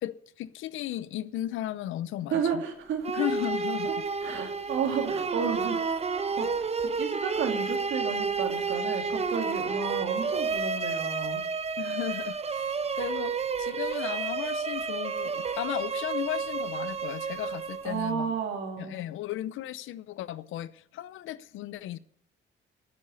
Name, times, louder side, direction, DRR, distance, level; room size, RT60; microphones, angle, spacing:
voice 1, 0.0-2.6 3.1-3.9 11.8-18.3 18.8-22.0, left 13 dB, 85° left, 0.7 m, -35 dB
voice 2, 2.3-3.1 4.2-5.8 6.3-6.5 6.8-11.4 17.8-19.0, right 7 dB, 75° right, 2.8 m, -32 dB
sound 1, 3.0-18.1, right 5 dB, 30° right, 0.9 m, -31 dB
9.9 x 9.7 x 8.4 m
cardioid pair, 90°, 20 cm